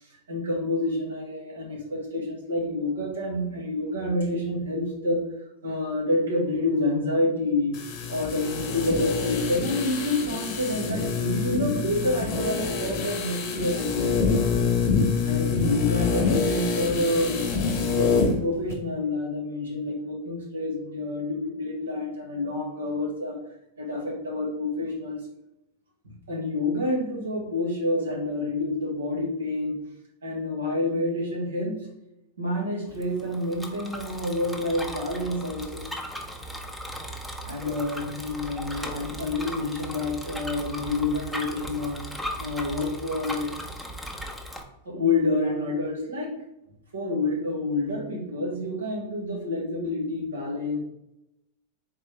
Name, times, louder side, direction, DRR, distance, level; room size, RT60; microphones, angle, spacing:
voice 1, 0.3-5.2 5.6-7.7 8.1-14.4 15.2-17.5 17.9-23.4 23.8-25.2 26.3-29.8 30.2-31.8 32.4-35.9 37.5-42.0 42.4-43.5 44.8-46.4 46.9-50.8, left 2 dB, 85° right, -3 dB, 1.6 m, -28 dB
sound 1, 7.7-18.4 18.7-18.8, left 5 dB, 50° left, 1.1 m, -26 dB
Bicycle, 32.9-44.6, equal, ahead, 0.7 m, -37 dB
4.1 x 3.5 x 3.3 m, 0.87 s
hypercardioid pair, 100°, 0 cm